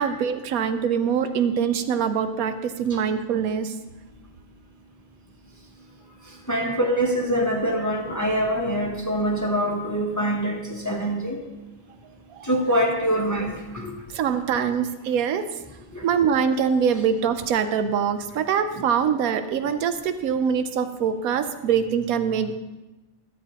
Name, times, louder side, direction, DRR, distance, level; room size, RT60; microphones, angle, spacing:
voice 1, 0.0-3.7 12.3-12.5 14.1-15.5 16.0-22.5, right 7 dB, 85° right, 9 dB, 1.1 m, -24 dB
voice 2, 6.5-11.4 12.4-13.9 15.9-16.1 18.8-18.9 19.6-19.7, equal, 15° left, 1 dB, 0.6 m, -24 dB
13.0 x 7.7 x 2.9 m, 1.1 s
omnidirectional pair, 1.4 m